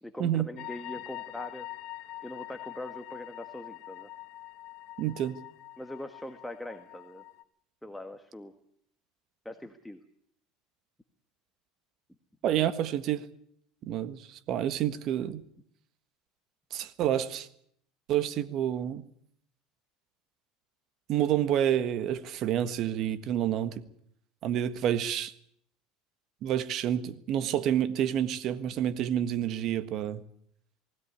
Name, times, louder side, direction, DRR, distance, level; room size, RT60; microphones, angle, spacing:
voice 1, 0.0-1.7 2.2-4.1 5.8-7.2 7.8-8.5 9.4-10.0, left 1 dB, 5° left, 1.5 m, -42 dB
sound 1, 0.6-7.4, left 15 dB, 60° left, 1.7 m, -44 dB
voice 2, 5.0-5.4 12.4-13.3 13.8-15.4 16.7-17.5 18.1-19.0 21.1-23.8 24.4-25.3 26.4-30.2, right 10 dB, 50° right, 1.5 m, -29 dB
20.0 x 17.0 x 9.8 m
supercardioid pair, 125°, 0 cm